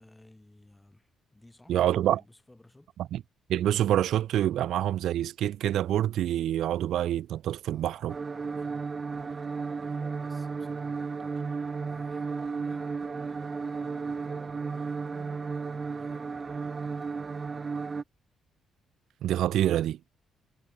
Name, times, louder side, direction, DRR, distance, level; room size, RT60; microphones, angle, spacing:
voice 1, 0.0-2.9 7.7-18.1, left 1 dB, 10° left, 7.9 m, -55 dB
voice 2, 1.7-2.2 3.1-3.2 3.5-8.1 19.2-20.0, right 12 dB, 75° right, 0.7 m, -26 dB
sound 1, 8.1-18.0, right 4 dB, 35° right, 1.4 m, -34 dB
cardioid pair, 90°, 0 cm